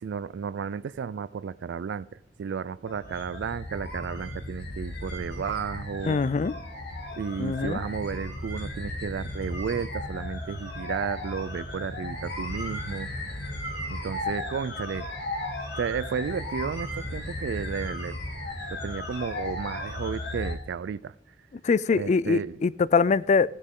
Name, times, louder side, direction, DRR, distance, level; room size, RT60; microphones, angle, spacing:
voice 1, 0.0-6.2 7.2-13.1 13.9-15.1 15.8-18.2 18.7-21.1 21.9-22.6, right 6 dB, 70° right, 0.3 m, -33 dB
Whirling Sound, 2.8-20.6, left 1 dB, 65° left, 2.7 m, -35 dB
voice 2, 6.1-6.5 7.4-7.8 21.6-23.6, left 5 dB, 40° left, 0.3 m, -23 dB
16.0 x 10.0 x 3.7 m
head